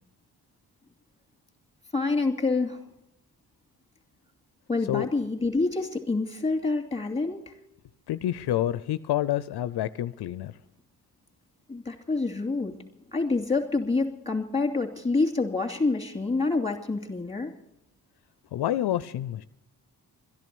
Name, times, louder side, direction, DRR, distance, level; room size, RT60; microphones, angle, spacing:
voice 1, 1.9-2.8 4.7-7.5 11.7-12.7 13.1-17.5, left 3 dB, 15° left, 3 dB, 2.6 m, -27 dB
voice 2, 8.1-10.5 18.5-19.4, left 12 dB, 75° left, 14 dB, 0.5 m, -28 dB
13.0 x 11.0 x 8.4 m, 0.83 s
cardioid pair, 60°, 39 cm